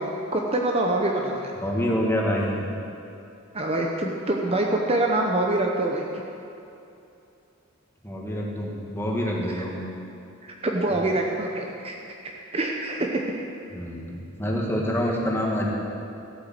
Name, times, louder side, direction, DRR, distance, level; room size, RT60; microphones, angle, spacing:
voice 1, 0.0-1.5 3.5-6.0 9.5-9.6 10.6-11.9 12.2-13.2, right 2 dB, 30° right, 0 dB, 0.9 m, -25 dB
voice 2, 1.6-2.7 8.0-9.8 10.9-11.0 13.7-15.7, equal, 10° left, -3 dB, 1.9 m, -27 dB
15.0 x 8.3 x 7.7 m, 2.7 s
head